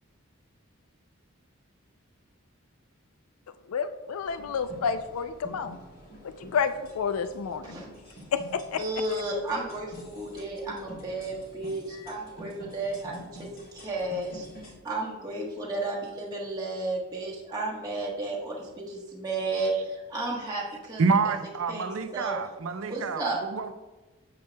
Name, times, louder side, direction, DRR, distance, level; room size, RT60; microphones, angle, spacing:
voice 1, 3.7-5.8 6.2-7.8 8.3-8.8 11.9-12.1, left 6 dB, 90° left, 0.4 m, -30 dB
sound 1, 4.2-14.7, equal, 70° left, 2.5 m, -47 dB
voice 2, 8.7-14.5 14.8-21.3 21.7-22.4 22.9-23.4, right 2 dB, 20° right, 1.2 m, -33 dB
voice 3, 21.0-23.7, right 4 dB, 75° right, 0.6 m, -27 dB
8.5 x 7.8 x 2.2 m
head